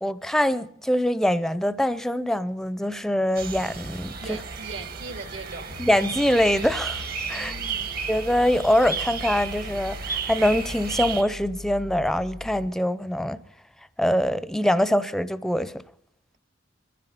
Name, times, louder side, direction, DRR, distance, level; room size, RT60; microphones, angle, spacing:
voice 1, 0.0-4.4 5.8-7.0 7.3-7.5 8.1-13.4 14.0-15.8, equal, ahead, 0.5 m, -24 dB
sound 1, 3.3-11.2, right 5 dB, 50° right, 1.3 m, -33 dB
voice 2, 4.2-5.7 7.3-7.9, right 3 dB, 75° right, 2.5 m, -39 dB
sound 2, 5.7-12.7, left 2 dB, 90° left, 0.6 m, -41 dB
22.0 x 15.0 x 4.0 m
head